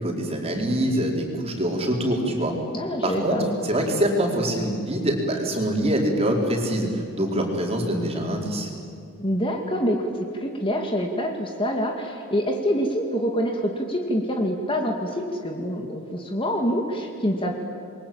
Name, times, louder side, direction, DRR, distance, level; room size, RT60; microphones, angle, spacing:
voice 1, 0.0-2.6 3.0-8.7, right 1 dB, 25° right, 0 dB, 4.6 m, -24 dB
voice 2, 2.7-3.6 9.2-10.1 10.4-17.5, equal, 25° left, 2 dB, 2.3 m, -26 dB
28.0 x 23.0 x 8.8 m, 2.6 s
head